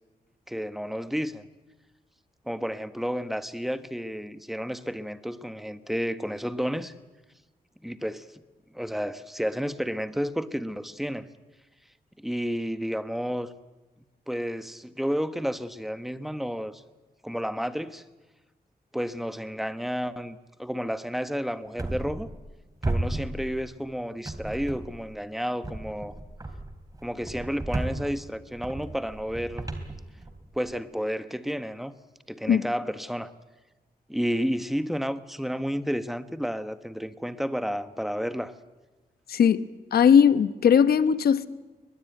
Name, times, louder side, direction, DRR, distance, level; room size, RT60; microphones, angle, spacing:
voice 1, 0.5-1.4 2.5-6.9 7.8-8.4 8.7-11.3 12.2-13.5 14.3-16.8 17.2-18.0 18.9-22.3 22.8-26.1 27.0-29.7 30.5-31.9 32.3-33.3 34.1-38.5, equal, ahead, 11 dB, 1.1 m, -31 dB
sound 1, 21.8-22.6 22.8-23.9 24.2-25.1 25.6-30.7, right 2 dB, 25° right, 3.0 m, -34 dB
voice 2, 39.3-39.6 39.9-41.5, left 7 dB, 85° left, 13 dB, 1.0 m, -19 dB
22.0 x 21.0 x 9.2 m, 1.2 s
wide cardioid pair, 115°, 16 cm